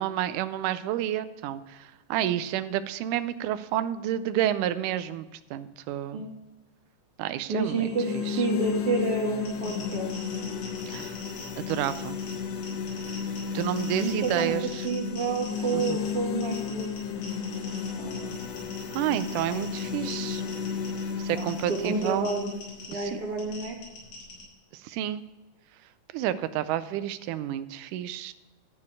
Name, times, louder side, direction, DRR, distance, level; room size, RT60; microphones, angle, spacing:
voice 1, 0.0-6.2 7.2-7.9 8.1-8.5 10.9-11.1 11.6-12.2 13.5-14.9 15.7-16.0 18.9-20.4 21.2-22.3 22.9-23.2 24.7-25.2 26.1-28.3, right 12 dB, 80° right, 13 dB, 2.1 m, -30 dB
voice 2, 7.5-8.1 8.4-10.1 13.5-13.6 14.0-14.5 14.8-16.9 17.7-18.4 21.3-22.6 22.9-23.8, right 3 dB, 50° right, 0 dB, 2.5 m, -29 dB
sound 1, 7.7-23.7, left 6 dB, 65° left, 1.7 m, -33 dB
sound 2, 9.4-24.4, left 2 dB, 85° left, 5.4 m, -45 dB
13.5 x 4.5 x 8.4 m, 1.0 s
omnidirectional pair, 3.7 m